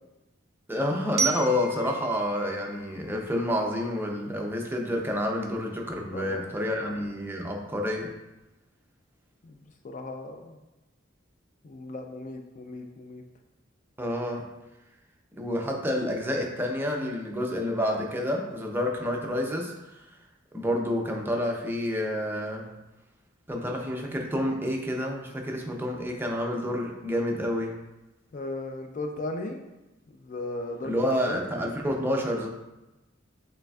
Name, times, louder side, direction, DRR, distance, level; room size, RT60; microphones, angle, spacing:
voice 1, 0.7-8.1 14.0-14.4 15.3-19.7 20.5-22.6 23.5-27.7 30.8-32.5, left 1 dB, 10° right, 0 dB, 0.5 m, -29 dB
Glockenspiel, 1.2-4.0, right 5 dB, 55° right, 0.6 m, -34 dB
voice 2, 6.1-6.4 6.7-6.9 9.4-10.6 11.6-13.2 28.3-29.6 30.1-31.4, left 2 dB, 40° left, 5 dB, 0.4 m, -37 dB
6.6 x 3.2 x 2.3 m, 1.0 s
head